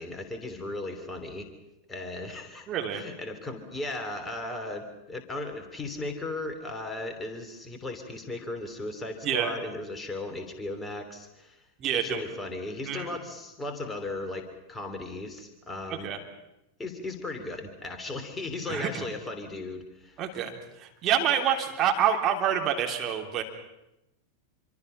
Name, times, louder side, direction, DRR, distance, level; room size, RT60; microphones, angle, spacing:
voice 1, 0.0-1.5 1.9-2.7 2.9-11.6 11.9-16.1 16.8-20.2, left 2 dB, 10° left, 6 dB, 3.1 m, -36 dB
voice 2, 2.7-3.0 9.2-9.5 11.8-12.2 12.9-13.2 16.0-16.2 18.7-19.0 20.2-23.4, right 8 dB, 30° right, 2 dB, 3.2 m, -27 dB
26.5 x 24.5 x 5.7 m, 0.89 s
figure-of-eight pair, 90°, 0 cm